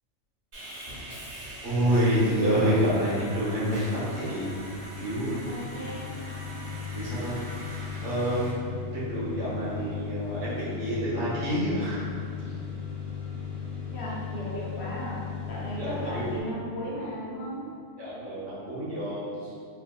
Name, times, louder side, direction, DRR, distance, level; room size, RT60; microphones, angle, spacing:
Sawing, 0.5-8.5, right 1 dB, 50° right, 0.9 m, -43 dB
voice 1, 1.6-4.5 5.0-5.4 6.9-7.4 8.0-8.7 8.9-12.0 12.4-12.5 15.8-16.2 18.0-19.5, equal, 80° right, -9 dB, 1.4 m, -28 dB
sound 1, 4.5-16.4, left 7 dB, ahead, 0.7 m, -37 dB
voice 2, 5.5-6.1 9.8-9.9 13.9-15.2 15.5-17.7, equal, 60° left, -6 dB, 0.9 m, -36 dB
4.0 x 2.2 x 2.2 m, 2.4 s
omnidirectional pair, 1.3 m